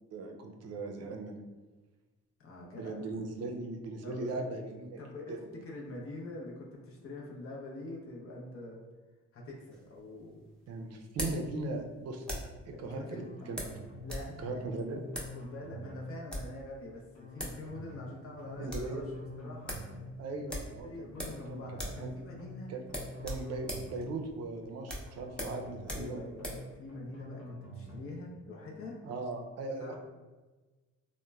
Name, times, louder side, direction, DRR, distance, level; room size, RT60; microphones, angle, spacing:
voice 1, 0.1-1.4 2.8-5.0 5.3-5.5 10.7-12.4 12.6-13.6 14.4-15.0 18.6-19.0 20.2-21.1 21.5-21.6 22.0-22.1 22.7-22.8 23.2-26.2 29.0-29.9, right 3 dB, 55° right, 3 dB, 0.5 m, -38 dB
voice 2, 2.4-3.0 4.0-4.5 5.0-8.8 9.3-10.4 12.7-13.5 14.0-14.8 15.3-19.1 19.4-19.8 20.8-22.7 25.9-28.9 29.8-29.9, left 2 dB, 50° left, -2 dB, 0.6 m, -45 dB
sound 1, 9.7-12.6 13.6-14.3 14.6-14.7 15.1-15.4 16.1-16.6 17.1-17.2 17.4-17.6 17.9-18.0 18.3-18.9 19.3-19.4 19.7-19.9 20.5-21.5 21.7-22.1 22.3-22.5 22.9-26.7, equal, 5° left, 0.6 m, -40 dB
sound 2, 13.1-14.1 14.4-14.6 14.9-16.1 17.1-18.1 18.4-18.6 18.9-20.1 21.1-22.1 22.4-22.6 22.9-24.1 25.1-26.1 26.4-26.6 26.9-28.1, left 1 dB, 75° left, 1.1 m, -46 dB
2.9 x 2.1 x 2.2 m, 1.2 s
cardioid pair, 90°, 30 cm